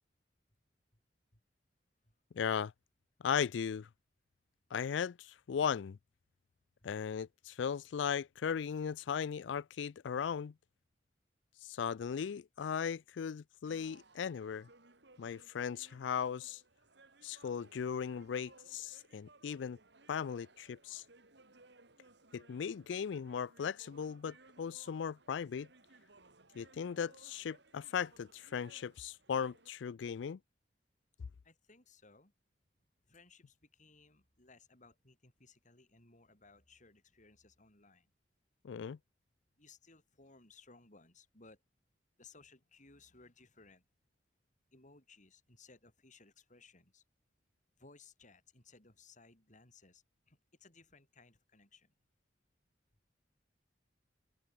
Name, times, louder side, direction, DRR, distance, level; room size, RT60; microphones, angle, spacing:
voice 1, 2.3-2.7 3.2-3.9 4.7-6.0 6.8-10.5 11.6-14.7 15.2-16.6 17.2-19.8 20.1-21.0 22.3-25.7 26.5-30.4 38.6-39.0, left 7 dB, 80° left, 0.4 m, -37 dB
sound 1, 13.6-29.7, right 2 dB, 65° right, 4.2 m, -63 dB
voice 2, 31.4-32.3 33.1-38.1 39.6-41.6 42.2-43.8 44.7-47.0 47.8-51.9, left 3 dB, 45° left, 5.6 m, -62 dB
open air
head